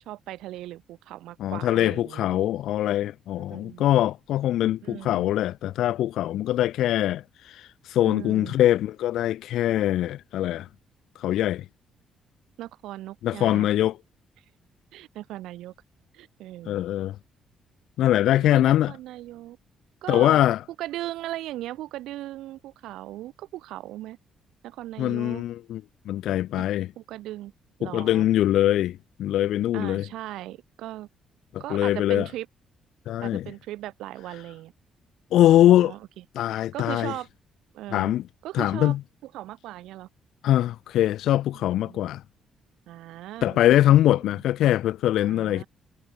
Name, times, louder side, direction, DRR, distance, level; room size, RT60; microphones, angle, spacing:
voice 1, 0.1-2.5 3.4-3.9 4.8-5.3 8.0-8.5 12.6-13.7 14.9-15.7 16.1-16.8 18.3-19.6 20.0-20.4 20.8-24.2 24.6-25.4 26.5-26.6 27.0-27.5 27.8-28.3 29.7-31.1 31.6-32.5 33.2-34.7 35.4-36.2 36.7-37.3 37.7-38.1 38.4-39.0 39.2-40.1 41.5-42.0 42.9-44.4 45.2-45.7, right 15 dB, 90° right, 7.4 m, -38 dB
voice 2, 1.4-10.7 11.2-11.6 13.2-14.0 16.7-17.2 18.0-18.9 20.1-20.6 25.0-26.9 27.8-30.1 31.5-32.3 33.1-33.5 35.3-35.9 36.4-37.1 37.9-38.2 38.5-39.0 40.4-42.2 43.4-45.6, left 13 dB, 80° left, 0.5 m, -22 dB
cardioid pair, 90°, 0 cm